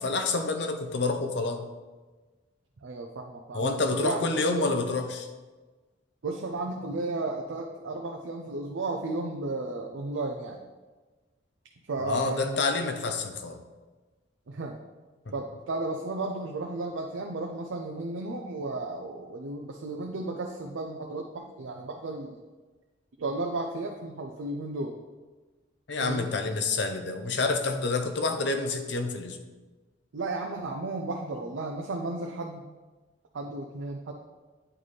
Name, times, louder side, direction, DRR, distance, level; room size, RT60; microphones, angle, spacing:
voice 1, 0.0-1.6 3.5-5.3 12.0-13.6 15.3-15.4 25.9-29.4, left 3 dB, 60° left, 6 dB, 0.6 m, -28 dB
voice 2, 2.8-4.6 6.2-10.6 11.9-12.7 14.5-14.8 15.3-22.4 23.2-25.0 26.0-26.3 30.1-32.7 33.3-34.1, right 2 dB, 75° right, 2 dB, 0.5 m, -34 dB
8.8 x 4.1 x 3.2 m, 1.3 s
head